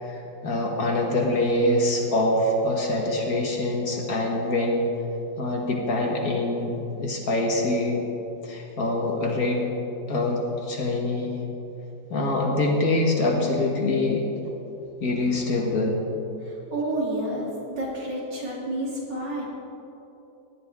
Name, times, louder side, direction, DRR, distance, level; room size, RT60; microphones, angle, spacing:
voice 1, 0.0-4.9 5.4-8.0 8.4-9.7 10.1-11.4 12.1-14.2 15.0-16.0, left 2 dB, 55° left, 0 dB, 1.8 m, -24 dB
voice 2, 16.4-19.4, right 1 dB, 70° right, -5 dB, 3.6 m, -30 dB
17.5 x 10.5 x 3.6 m, 3.0 s
omnidirectional pair, 2.0 m